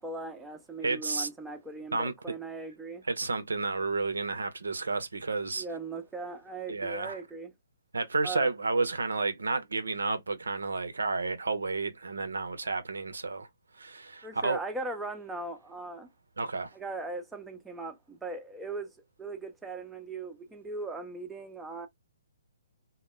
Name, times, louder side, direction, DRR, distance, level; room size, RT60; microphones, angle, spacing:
voice 1, 0.0-3.0 5.5-7.5 8.2-8.5 14.2-16.1 16.7-21.9, right 3 dB, 5° right, 0.4 m, -39 dB
voice 2, 0.8-1.3 1.9-2.4 3.1-5.7 6.7-7.2 7.9-13.5 13.8-14.6 16.4-16.7, right 3 dB, 80° right, 0.5 m, -31 dB
2.1 x 2.0 x 3.2 m
figure-of-eight pair, 135°, 0 cm